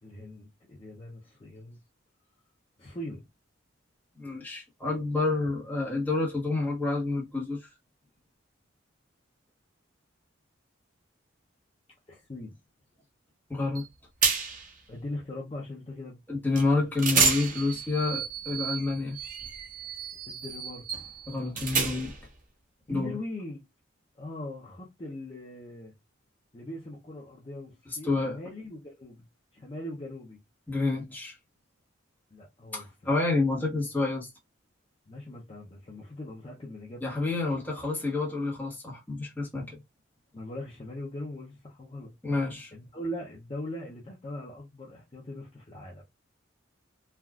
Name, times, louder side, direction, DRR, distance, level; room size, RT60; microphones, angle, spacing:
voice 1, 0.0-1.8 2.8-3.2 12.1-12.6 14.9-16.2 20.3-20.8 22.9-23.6 24.2-25.9 26.5-29.2 29.5-30.4 32.3-32.9 35.1-37.0 40.3-42.1 42.7-46.0, left 1 dB, 30° left, 0.5 m, -40 dB
voice 2, 4.1-7.7 13.5-13.8 16.3-19.2 21.3-22.1 22.9-23.2 27.9-28.4 30.7-31.4 32.7-34.3 37.0-39.8 42.2-42.7, left 3 dB, 10° left, 1.0 m, -29 dB
sound 1, 13.8-13.9 14.2-14.7 16.6-16.7 17.0-22.3, right 5 dB, 40° right, 0.6 m, -30 dB
3.4 x 2.3 x 2.3 m
head